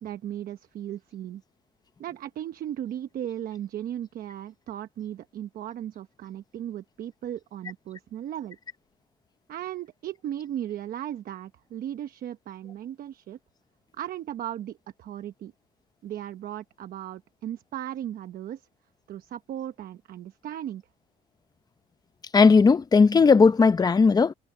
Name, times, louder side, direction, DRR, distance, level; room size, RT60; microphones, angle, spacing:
voice 1, 0.0-1.4 2.0-8.6 9.5-13.4 13.9-15.5 16.0-18.6 19.1-20.8, right 11 dB, 60° right, 1.0 m, -36 dB
voice 2, 22.3-24.3, left 5 dB, 25° left, 0.9 m, -17 dB
cardioid pair, 110°, 17 cm